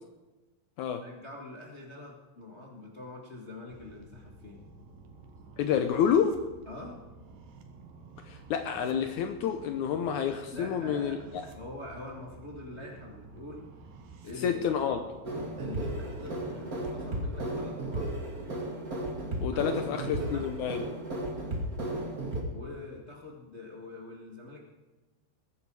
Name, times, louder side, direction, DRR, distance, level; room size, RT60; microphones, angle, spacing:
voice 1, 1.0-4.6 6.7-7.0 10.5-11.2 11.5-13.7 14.2-14.6 15.6-18.1 19.5-20.5 22.5-24.6, left 2 dB, 60° left, -1 dB, 0.6 m, -45 dB
sound 1, 3.7-16.9, right 4 dB, 70° right, 3.1 m, -51 dB
voice 2, 5.6-6.5 8.2-11.4 14.4-15.0 19.4-20.8, left 8 dB, 90° left, 6 dB, 1.7 m, -29 dB
sound 2, 15.2-22.4, right 1 dB, 30° right, 2.0 m, -34 dB
21.0 x 10.0 x 4.8 m, 1.2 s
omnidirectional pair, 4.5 m